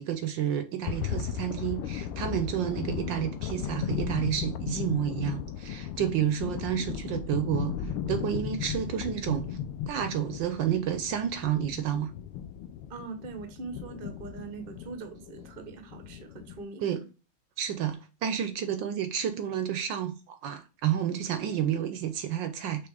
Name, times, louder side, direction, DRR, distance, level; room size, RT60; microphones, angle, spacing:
voice 1, 0.0-9.6 9.9-12.1 16.8-17.0 17.6-22.9, right 10 dB, 70° right, 1.2 m, -30 dB
sound 1, 0.8-16.6, left 9 dB, 85° left, 1.5 m, -36 dB
voice 2, 12.9-16.9, right 4 dB, 45° right, 0.7 m, -42 dB
6.0 x 3.3 x 4.7 m
omnidirectional pair, 2.4 m